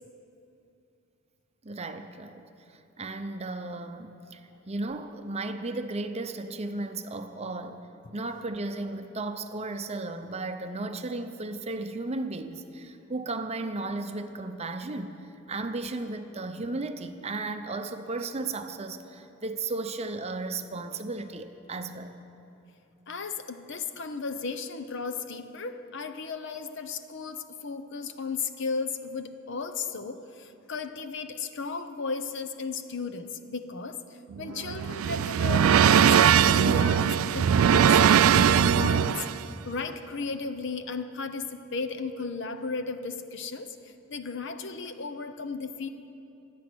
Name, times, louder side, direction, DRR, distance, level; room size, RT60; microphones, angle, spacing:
voice 1, 1.6-2.4 3.0-7.9 8.1-15.2 15.5-22.1, right 2 dB, 30° right, 8 dB, 0.7 m, -35 dB
voice 2, 23.1-34.0 34.4-43.8 44.1-45.9, left 4 dB, 60° left, 9 dB, 0.8 m, -35 dB
sound 1, 34.3-39.4, right 8 dB, 90° right, 0.4 m, -20 dB
24.0 x 8.5 x 6.2 m, 2.7 s
head